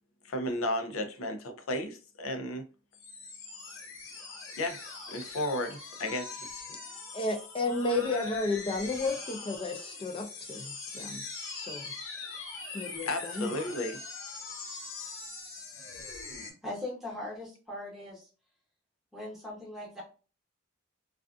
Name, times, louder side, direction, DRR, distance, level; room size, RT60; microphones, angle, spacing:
voice 1, 0.2-2.6 4.6-4.8 5.1-6.6 13.1-14.0, left 1 dB, 85° left, 0.5 m, -33 dB
sound 1, 2.9-16.5, left 4 dB, 65° left, 0.8 m, -42 dB
Keyboard (musical), 6.0-8.6, left 5 dB, 35° right, 0.8 m, -52 dB
voice 2, 7.1-11.2 11.5-11.9 12.7-13.5, left 2 dB, 25° left, 0.4 m, -32 dB
voice 3, 16.6-18.3 19.1-20.0, left 1 dB, ahead, 0.8 m, -40 dB
2.5 x 2.3 x 2.4 m
head